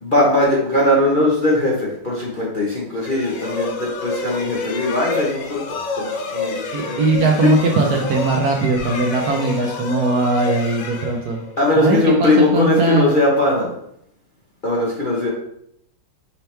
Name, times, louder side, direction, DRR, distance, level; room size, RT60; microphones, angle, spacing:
voice 1, 0.0-7.5 11.6-13.7 14.6-15.3, left 1 dB, 40° left, -5 dB, 0.7 m, -19 dB
sound 1, 3.0-11.7, left 4 dB, 70° left, 0.8 m, -29 dB
voice 2, 6.7-11.4 11.7-13.1, right 3 dB, 65° right, 0 dB, 1.0 m, -20 dB
5.4 x 2.9 x 3.3 m, 0.72 s
omnidirectional pair, 2.0 m